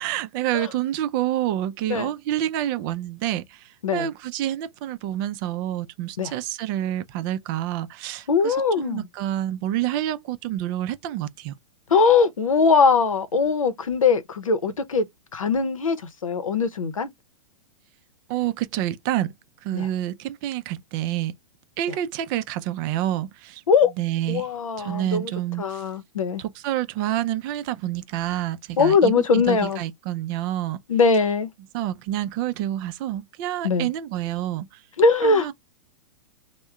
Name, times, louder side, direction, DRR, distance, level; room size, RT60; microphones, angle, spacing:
voice 1, 0.0-11.5 18.3-19.3 19.6-21.3 21.8-23.6 24.0-24.5 24.8-25.8 26.4-30.8 31.7-34.8 35.2-35.5, right 13 dB, 40° right, 0.4 m, -28 dB
voice 2, 8.3-9.1 11.9-15.1 15.3-16.0 16.2-17.1 19.7-19.9 23.7-23.9 24.3-25.3 25.6-26.4 28.8-29.8 30.9-31.5 33.6-33.9 35.0-35.5, left 4 dB, 80° left, 0.7 m, -21 dB
3.5 x 2.1 x 3.3 m
figure-of-eight pair, 105°, 17 cm